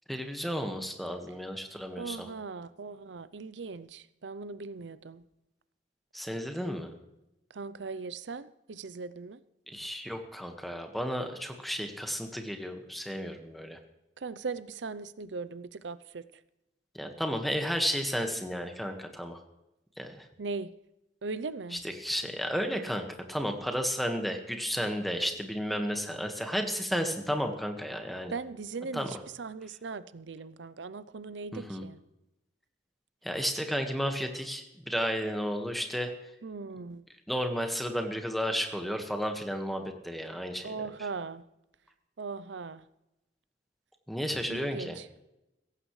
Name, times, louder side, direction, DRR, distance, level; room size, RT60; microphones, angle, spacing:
voice 1, 0.1-2.3 6.1-6.9 9.7-13.8 16.9-19.4 20.0-20.3 21.8-28.3 28.9-29.1 31.5-31.8 33.2-36.1 37.3-40.7 44.1-45.0, equal, ahead, 4 dB, 1.6 m, -33 dB
voice 2, 2.0-5.2 7.5-9.4 14.2-16.2 20.4-20.7 21.2-21.8 28.3-32.0 36.4-37.0 40.6-41.4 42.2-42.9 44.5-45.1, right 4 dB, 90° right, 16 dB, 0.6 m, -39 dB
16.5 x 15.5 x 3.2 m, 0.91 s
head